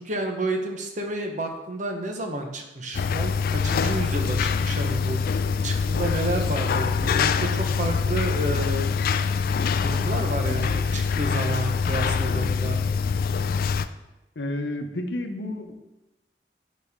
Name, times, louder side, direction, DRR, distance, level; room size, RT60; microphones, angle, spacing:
voice 1, 0.0-5.2 5.6-8.9 9.8-12.8, right 1 dB, 45° right, 3 dB, 1.0 m, -30 dB
sound 1, 2.9-13.9, left 5 dB, 55° left, 0.3 m, -24 dB
voice 2, 14.4-15.8, left 1 dB, 75° left, 6 dB, 0.8 m, -31 dB
11.0 x 4.2 x 3.6 m, 0.97 s
head